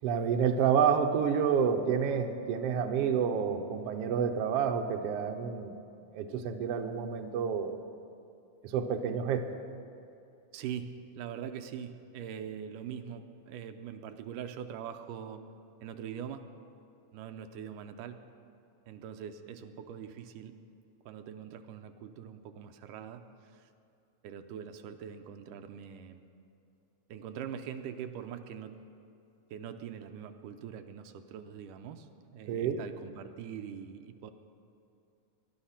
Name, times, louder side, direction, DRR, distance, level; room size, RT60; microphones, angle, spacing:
voice 1, 0.0-5.8 6.1-7.8 8.6-9.4 32.5-32.8, right 7 dB, 65° right, 5 dB, 1.6 m, -29 dB
voice 2, 10.5-15.5 15.8-16.4 17.1-18.2 18.9-20.5 21.1-23.7 24.2-26.2 27.1-28.8 29.5-32.1 32.3-34.3, right 8 dB, 85° right, 7 dB, 2.3 m, -43 dB
21.0 x 11.5 x 5.8 m, 2.6 s
omnidirectional pair, 3.7 m